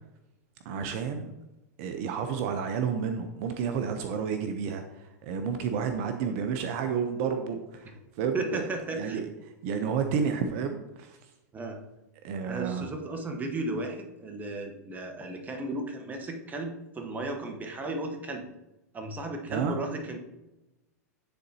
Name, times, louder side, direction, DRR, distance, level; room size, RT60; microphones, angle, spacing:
voice 1, 0.6-1.3 1.8-7.9 8.2-9.3 9.6-11.2 12.2-12.9 19.5-19.8, right 6 dB, 55° right, 6 dB, 0.6 m, -31 dB
voice 2, 8.3-9.2 11.5-11.8 12.4-18.4 18.9-20.2, right 2 dB, 20° right, 4 dB, 1.0 m, -35 dB
9.8 x 4.0 x 2.8 m, 0.96 s
hypercardioid pair, 110°, 9 cm